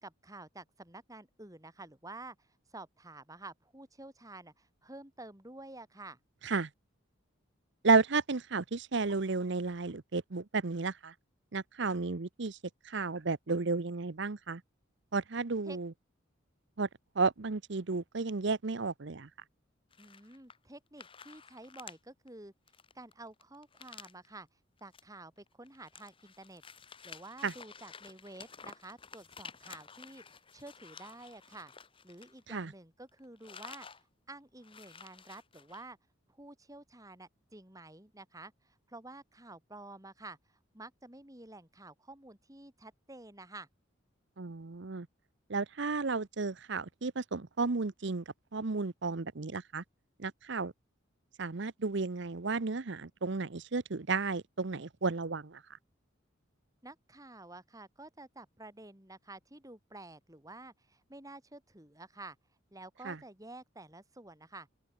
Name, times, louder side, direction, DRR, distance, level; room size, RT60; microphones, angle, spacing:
voice 1, 0.0-6.2 15.7-15.8 20.0-22.5 22.9-24.5 24.8-26.6 27.0-31.7 32.0-33.9 34.3-36.0 36.3-40.4 40.7-43.7 56.8-62.4 62.7-64.7, right 2 dB, 15° right, 2.8 m, -50 dB
voice 2, 7.8-11.1 11.5-12.6 12.8-14.6 15.1-15.9 16.8-16.9 17.2-19.3 27.4-27.5 32.5-32.7 44.4-45.1 45.5-48.2 48.5-49.8 50.2-50.7 51.4-55.6 63.0-63.2, right 4 dB, 60° right, 0.8 m, -32 dB
sound 1, 19.9-20.7 21.0-22.0 22.3-22.4 22.7-24.3 24.8-25.0 25.4-32.8 33.1-34.0 34.3-34.4 34.6-35.9, left 6 dB, 25° left, 1.6 m, -52 dB
head